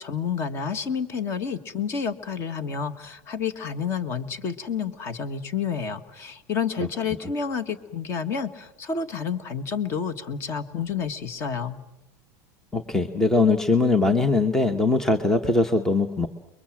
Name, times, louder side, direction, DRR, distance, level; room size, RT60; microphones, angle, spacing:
voice 1, 0.0-11.8, left 6 dB, 30° left, 11 dB, 1.6 m, -29 dB
voice 2, 12.7-16.3, left 3 dB, 5° left, 8 dB, 0.9 m, -21 dB
29.5 x 23.0 x 7.4 m, 0.88 s
supercardioid pair, 170°, 9 cm